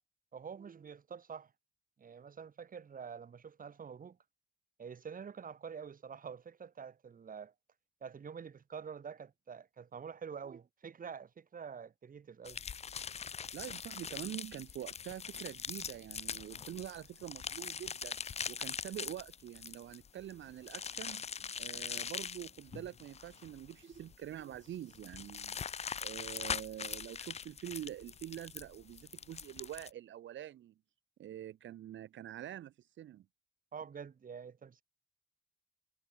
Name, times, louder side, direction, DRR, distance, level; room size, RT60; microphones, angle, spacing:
voice 1, 0.3-1.5 2.0-4.2 4.8-7.5 8.0-12.6 23.8-24.0 33.7-34.8, right 6 dB, 45° right, 4.1 m, -47 dB
sound 1, 12.5-29.9, left 7 dB, 30° left, 0.6 m, -42 dB
voice 2, 13.5-18.2 18.5-21.2 21.6-25.6 26.0-30.7 31.2-33.2, right 11 dB, 70° right, 2.2 m, -45 dB
cardioid pair, 90°, 20 cm